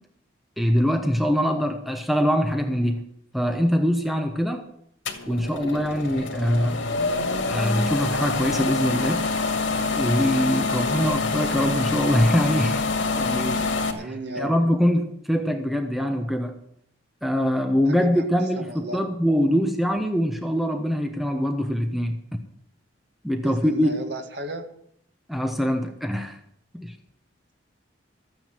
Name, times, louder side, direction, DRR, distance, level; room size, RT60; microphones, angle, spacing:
voice 1, 0.6-3.0 3.3-4.7 5.3-6.9 7.5-9.3 9.9-12.9 13.1-14.1 14.4-16.6 17.2-22.2 23.2-23.9 25.3-26.4 26.7-27.0, equal, ahead, 5 dB, 0.9 m, -23 dB
sound 1, 5.0-13.9, left 3 dB, 90° left, 2.2 m, -26 dB
voice 2, 10.6-11.1 14.0-14.5 17.9-18.2 18.6-19.0 23.4-24.7, right 1 dB, 60° right, 5 dB, 1.9 m, -35 dB
14.0 x 9.3 x 7.4 m, 0.71 s
head